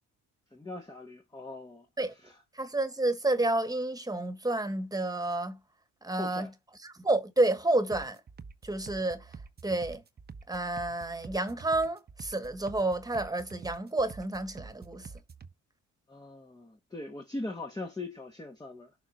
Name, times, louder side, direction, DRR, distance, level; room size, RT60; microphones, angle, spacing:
voice 1, 0.5-1.9 2.2-2.4 6.1-6.5 16.1-18.9, left 2 dB, 15° left, 1.2 m, -41 dB
voice 2, 2.5-5.6 6.0-6.5 6.8-8.2 8.6-9.2 9.6-10.0 10.5-15.1, right 2 dB, 10° right, 1.6 m, -30 dB
sound 1, 7.9-15.5, right 5 dB, 30° right, 1.0 m, -48 dB
7.1 x 3.9 x 4.8 m
cardioid pair, 90°, 30 cm